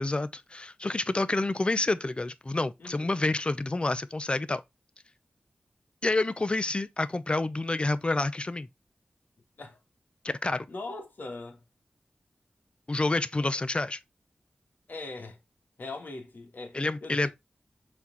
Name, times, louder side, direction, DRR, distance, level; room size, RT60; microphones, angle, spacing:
voice 1, 0.0-4.6 6.0-8.7 10.2-10.7 12.9-14.0 16.7-17.3, left 2 dB, 35° left, 0.8 m, -28 dB
voice 2, 2.8-3.2 9.6-9.8 10.7-11.6 14.9-15.4 15.8-17.3, left 3 dB, 75° left, 2.6 m, -41 dB
7.1 x 4.4 x 4.0 m
wide cardioid pair, 70°, 3 cm